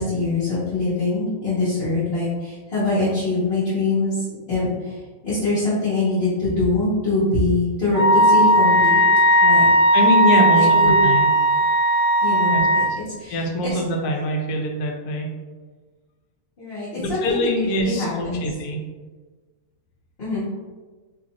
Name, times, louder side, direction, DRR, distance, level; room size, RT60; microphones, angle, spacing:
voice 1, 0.0-9.0 9.4-9.7 10.6-11.0 12.2-12.8 13.2-13.7 16.6-17.5 17.8-18.4 20.2-20.4, left 2 dB, 45° left, -12 dB, 1.2 m, -23 dB
Wind instrument woodwind instrument, 7.9-12.9, right 1 dB, 40° right, 0.9 m, -16 dB
voice 2, 9.9-11.3 12.5-13.0 13.3-15.3 16.9-18.8, left 1 dB, 85° left, 2 dB, 1.1 m, -24 dB
2.8 x 2.5 x 4.0 m, 1.4 s
omnidirectional pair, 1.6 m